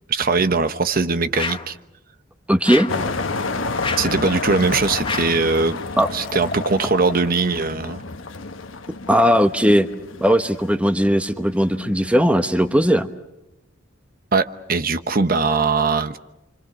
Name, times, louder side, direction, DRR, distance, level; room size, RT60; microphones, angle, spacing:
voice 1, 0.1-1.8 4.0-5.8 6.1-8.0 14.3-16.2, right 4 dB, 50° right, 9 dB, 1.1 m, -20 dB
sound 1, 1.3-1.8 2.6-3.1 3.8-4.2 5.0-5.4, left 4 dB, 25° left, 1.1 m, -29 dB
voice 2, 2.5-2.9 6.0-6.1 9.1-9.9 10.2-13.1, equal, 5° right, 7 dB, 1.2 m, -17 dB
sound 2, 2.9-13.0, left 3 dB, 80° left, 1.3 m, -30 dB
Liquid, 4.0-4.1 4.2-7.5 7.8-7.9, left 3 dB, 55° left, 1.4 m, -37 dB
29.0 x 26.0 x 6.2 m, 0.92 s
head